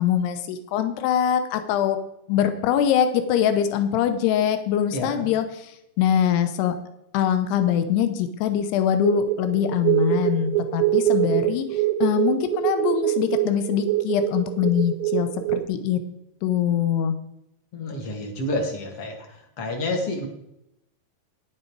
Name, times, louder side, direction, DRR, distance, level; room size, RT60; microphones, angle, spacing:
voice 1, 0.0-2.0 2.3-5.7 6.0-6.7 7.1-16.0 16.4-17.2, left 9 dB, 85° left, 9 dB, 3.0 m, -23 dB
voice 2, 4.9-5.2 17.7-19.2 19.6-20.3, left 1 dB, 45° left, 3 dB, 2.0 m, -28 dB
sound 1, 9.0-15.7, right 14 dB, 85° right, 2.1 m, -24 dB
10.5 x 9.0 x 4.7 m, 0.82 s
omnidirectional pair, 4.7 m